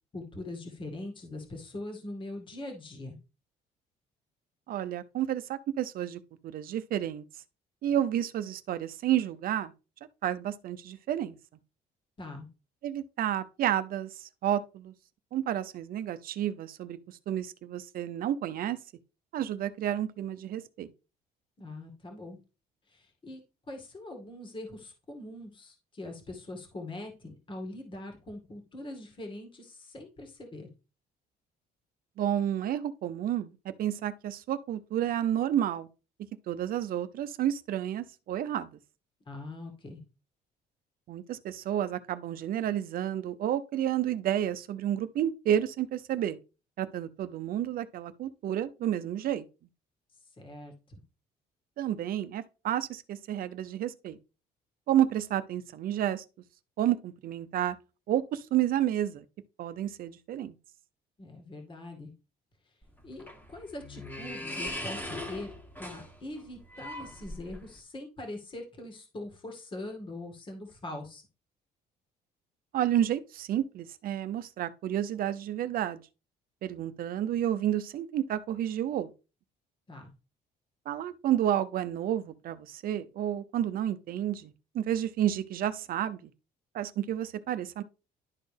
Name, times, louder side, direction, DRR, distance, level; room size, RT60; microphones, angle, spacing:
voice 1, 0.1-3.2 12.2-12.5 21.6-22.4 22.9-23.4 23.7-30.7 39.3-40.0 50.4-51.0 61.2-62.1 63.0-65.5 65.8-71.2 79.9-80.1, left 2 dB, 30° left, 2.1 m, -42 dB
voice 2, 4.7-7.2 7.8-9.7 10.2-11.4 12.8-14.9 15.3-18.8 19.3-20.9 32.2-33.5 33.8-35.9 36.5-38.7 41.1-46.4 46.8-49.4 51.8-54.2 54.9-56.2 56.8-57.8 58.1-59.2 59.6-60.5 72.7-76.0 76.6-79.1 80.9-86.3 86.7-87.8, right 11 dB, 60° right, 0.7 m, -30 dB
sound 1, 62.8-67.8, left 1 dB, 10° left, 1.8 m, -40 dB
11.5 x 4.3 x 3.4 m
cardioid pair, 110°, 17 cm